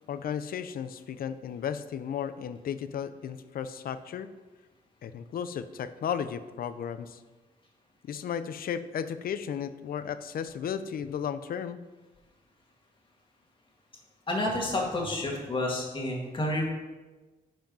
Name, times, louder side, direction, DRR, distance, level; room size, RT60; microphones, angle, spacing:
voice 1, 0.1-4.3 5.0-7.2 8.0-11.8, left 8 dB, 70° left, 12 dB, 0.6 m, -34 dB
voice 2, 14.3-16.6, left 1 dB, 35° left, -1 dB, 2.1 m, -29 dB
10.5 x 5.2 x 5.3 m, 1.2 s
wide cardioid pair, 150°, 16 cm